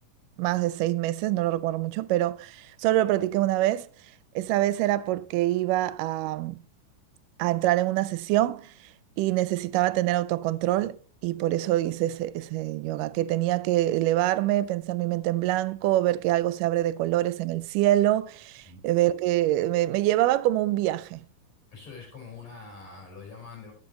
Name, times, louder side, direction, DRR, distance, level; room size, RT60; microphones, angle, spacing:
voice 1, 0.4-3.9 4.4-6.6 7.4-8.7 9.2-11.0 11.2-21.2, right 15 dB, 85° right, 2.1 m, -25 dB
voice 2, 21.7-23.7, left 4 dB, 55° left, 5.3 m, -44 dB
11.5 x 7.6 x 3.0 m
omnidirectional pair, 3.8 m